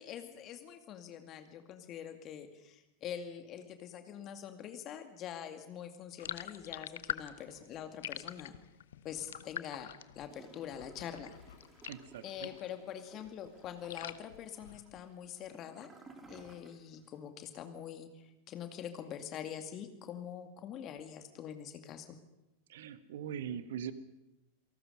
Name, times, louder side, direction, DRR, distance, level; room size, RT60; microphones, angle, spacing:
voice 1, 0.0-8.6 9.0-11.7 12.2-15.9 16.3-22.2, left 9 dB, 35° left, 7 dB, 2.3 m, -45 dB
sound 1, 6.2-12.8 13.1-15.2, left 10 dB, 60° left, 0.8 m, -45 dB
Gurgling / Toilet flush, 10.3-17.1 17.4-17.5, right 3 dB, 15° right, 3.3 m, -58 dB
voice 2, 11.8-12.5 22.7-23.9, right 9 dB, 55° right, 12 dB, 1.4 m, -41 dB
28.0 x 18.5 x 5.5 m, 0.96 s
figure-of-eight pair, 90°, 0 cm